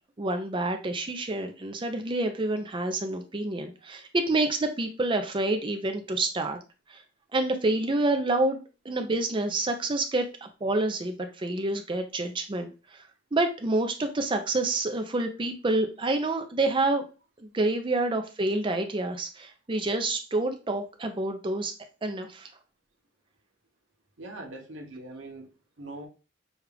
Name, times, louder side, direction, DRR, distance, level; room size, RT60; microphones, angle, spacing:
voice 1, 0.2-6.6 6.9-7.0 7.3-13.0 13.3-17.1 17.4-21.7 22.0-22.5, right 2 dB, 25° right, 0.5 m, -28 dB
voice 2, 24.2-26.1, right 2 dB, 90° right, 1.0 m, -42 dB
6.3 x 2.4 x 3.3 m
head